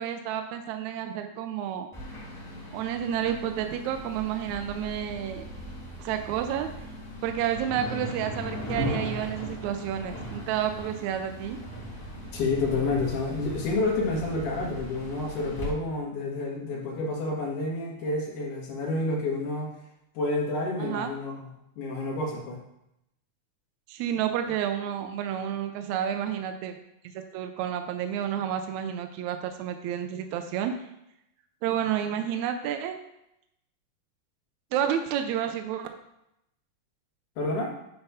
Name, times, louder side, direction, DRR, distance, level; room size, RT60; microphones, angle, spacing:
voice 1, 0.0-1.9 2.7-5.5 6.0-6.7 7.2-11.6 20.8-21.1 23.9-26.7 27.2-30.7 31.6-33.0 34.7-35.9, right 9 dB, 80° right, 6 dB, 1.8 m, -30 dB
sound 1, 1.9-15.7, equal, 10° left, 1.7 m, -38 dB
voice 2, 12.3-19.7 20.1-21.5 21.8-22.6 37.4-37.7, left 2 dB, 80° left, -2 dB, 3.0 m, -29 dB
8.9 x 3.5 x 5.5 m, 0.83 s
omnidirectional pair, 3.5 m